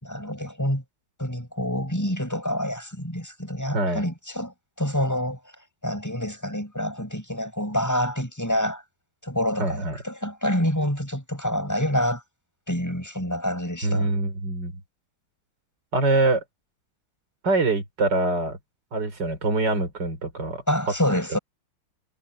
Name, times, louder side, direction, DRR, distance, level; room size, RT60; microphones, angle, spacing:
voice 1, 0.0-0.8 1.2-5.4 5.8-8.8 9.2-12.2 12.7-14.1 20.7-21.4, equal, 5° left, 7.3 m, -27 dB
voice 2, 3.7-4.1 9.6-10.0 13.8-14.7 15.9-16.4 17.4-18.6 18.9-20.6, right 2 dB, 50° right, 5.3 m, -24 dB
omnidirectional pair, 2.4 m